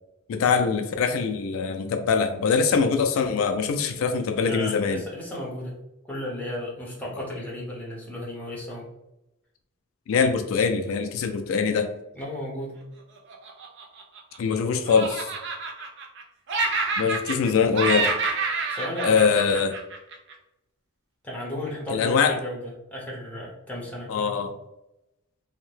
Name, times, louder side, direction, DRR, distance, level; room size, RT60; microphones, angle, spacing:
voice 1, 0.3-5.0 10.1-11.9 14.4-15.3 17.0-18.1 19.0-19.7 21.9-22.4 24.1-24.5, left 5 dB, 75° left, 7 dB, 0.3 m, -23 dB
voice 2, 4.4-5.8 6.1-8.8 12.2-12.7 18.7-19.2 21.2-24.3, left 1 dB, 5° left, -4 dB, 0.7 m, -34 dB
Laughter, 13.3-14.5 14.9-16.2 16.5-17.5 17.7-20.3, right 4 dB, 55° right, 0.4 m, -28 dB
2.7 x 2.2 x 3.1 m, 0.90 s
head